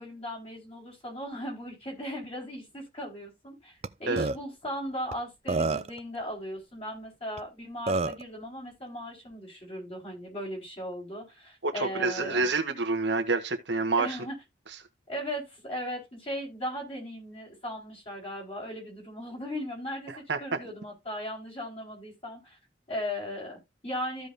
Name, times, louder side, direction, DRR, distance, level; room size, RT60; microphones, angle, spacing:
voice 1, 0.0-12.5 14.0-14.3 15.1-22.6 22.9-24.3, equal, 30° left, 4.5 m, -37 dB
Burping eructation, 3.8-3.9 4.2-4.4 5.1-5.2 5.5-6.0 7.4-7.5 7.9-8.2, right 3 dB, 30° right, 0.4 m, -27 dB
voice 2, 11.6-14.2 20.3-20.4, right 3 dB, 70° right, 1.3 m, -27 dB
14.5 x 5.1 x 2.6 m
head